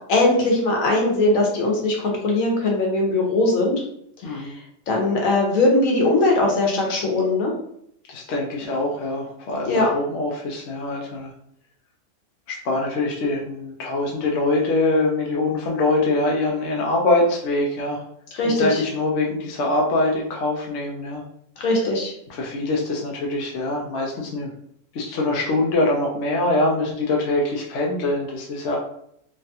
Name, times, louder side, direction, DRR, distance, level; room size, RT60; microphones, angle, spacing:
voice 1, 0.1-3.8 4.3-4.6 4.9-7.5 9.7-9.9 18.3-18.8 21.6-22.1, left 2 dB, 85° left, 0 dB, 1.2 m, -20 dB
voice 2, 4.2-4.5 8.1-11.3 12.5-18.0 18.4-21.2 22.3-24.5 24.9-28.8, left 2 dB, 65° left, -1 dB, 0.9 m, -23 dB
3.1 x 2.3 x 2.7 m, 0.71 s
omnidirectional pair, 1.4 m